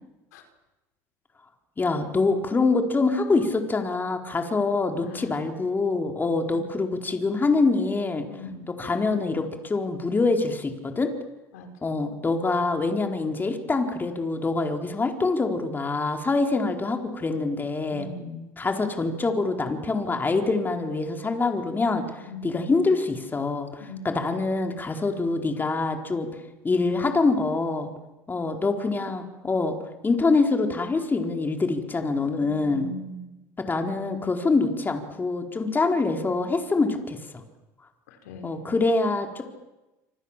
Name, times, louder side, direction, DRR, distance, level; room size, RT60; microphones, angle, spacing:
voice 1, 1.8-8.3 8.8-11.1 11.8-18.1 18.6-26.3 26.6-27.9 28.3-29.7 30.0-32.9 33.6-37.2 38.4-39.4, left 3 dB, 25° left, 4 dB, 4.4 m, -25 dB
voice 2, 5.1-5.4 6.4-6.6 8.3-8.8 11.5-11.7 17.9-18.5 22.3-22.7 23.8-24.4 32.4-33.2 38.1-38.7, left 1 dB, 90° left, 5 dB, 5.0 m, -40 dB
26.5 x 26.5 x 7.6 m, 1.0 s
supercardioid pair, 85°, 8 cm